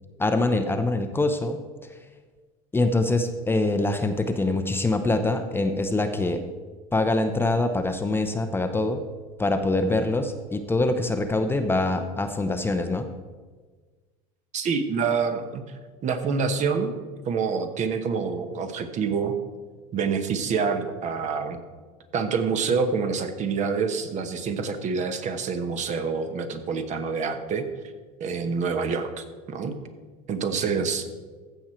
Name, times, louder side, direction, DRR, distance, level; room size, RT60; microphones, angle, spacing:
voice 1, 0.2-1.6 1.9-2.0 2.7-6.4 6.9-9.0 9.4-13.1, left 2 dB, 10° left, 7 dB, 0.7 m, -24 dB
voice 2, 14.5-16.9 17.3-19.4 19.9-21.6 22.1-27.7 28.2-29.8 30.3-31.1, right 5 dB, 45° right, 8 dB, 1.1 m, -27 dB
15.0 x 6.3 x 4.4 m, 1.4 s
supercardioid pair, 105°, 18 cm